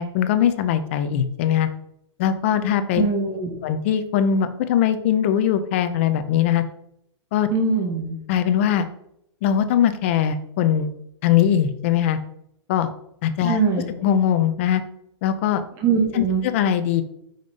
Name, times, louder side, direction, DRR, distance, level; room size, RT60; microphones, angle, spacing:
voice 1, 0.0-1.7 2.2-3.1 3.6-6.6 7.3-7.5 8.3-8.9 9.4-10.9 11.2-12.2 12.7-12.9 13.2-13.6 14.0-14.8 15.2-15.6 16.1-17.0, left 9 dB, 25° left, 10 dB, 0.4 m, -21 dB
voice 2, 3.0-3.6 7.5-8.2 13.4-13.9 15.8-16.5, right 5 dB, 20° right, 0 dB, 1.0 m, -22 dB
5.3 x 5.0 x 4.0 m, 0.77 s
hypercardioid pair, 170°, 15 cm